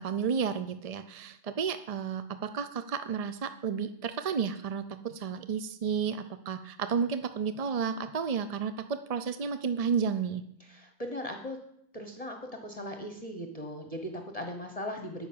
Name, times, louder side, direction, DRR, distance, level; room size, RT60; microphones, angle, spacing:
voice 1, 0.0-10.4, right 6 dB, 50° right, 10 dB, 0.4 m, -32 dB
voice 2, 10.6-11.6 11.9-15.3, equal, 30° left, 4 dB, 1.2 m, -38 dB
10.0 x 6.4 x 8.6 m, 0.73 s
omnidirectional pair, 1.3 m